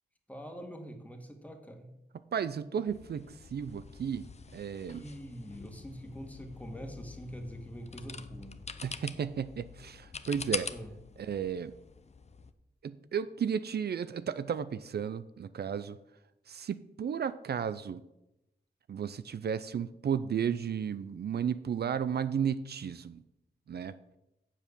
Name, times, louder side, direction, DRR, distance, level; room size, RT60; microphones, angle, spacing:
voice 1, 0.3-1.9 4.9-8.6 10.6-10.9, equal, 10° left, 4 dB, 1.7 m, -44 dB
voice 2, 2.3-4.3 4.5-5.0 8.8-10.7 11.2-11.7 12.8-16.0 16.5-18.0 18.9-23.2 23.7-24.0, right 7 dB, 70° right, 13 dB, 0.5 m, -33 dB
sound 1, 2.9-12.5, left 5 dB, 40° left, 0.6 m, -44 dB
8.1 x 7.3 x 6.8 m, 0.89 s
wide cardioid pair, 95°, 18 cm